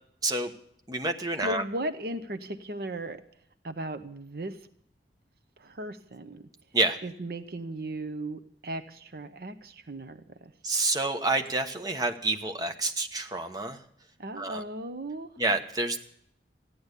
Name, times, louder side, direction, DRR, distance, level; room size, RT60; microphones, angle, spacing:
voice 1, 0.9-1.6 6.7-7.0 10.6-13.8 14.4-14.6 15.4-16.0, right 2 dB, 20° right, 5 dB, 1.1 m, -28 dB
voice 2, 1.4-3.2 3.6-4.7 5.6-6.4 7.0-10.5 14.2-15.4, right 1 dB, 60° right, 10 dB, 0.8 m, -36 dB
14.5 x 10.5 x 8.2 m, 0.69 s
head